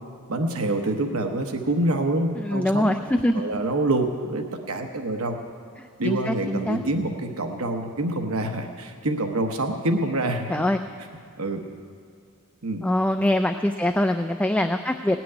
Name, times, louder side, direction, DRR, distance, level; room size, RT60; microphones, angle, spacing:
voice 1, 0.3-2.9 3.3-5.4 6.0-10.7 11.4-11.6 12.6-12.8, right 2 dB, 75° right, 5 dB, 1.0 m, -26 dB
voice 2, 2.4-3.4 5.8-6.8 10.5-10.8 12.8-15.2, left 1 dB, 5° left, 7 dB, 0.3 m, -24 dB
17.5 x 6.0 x 9.7 m, 2.3 s
head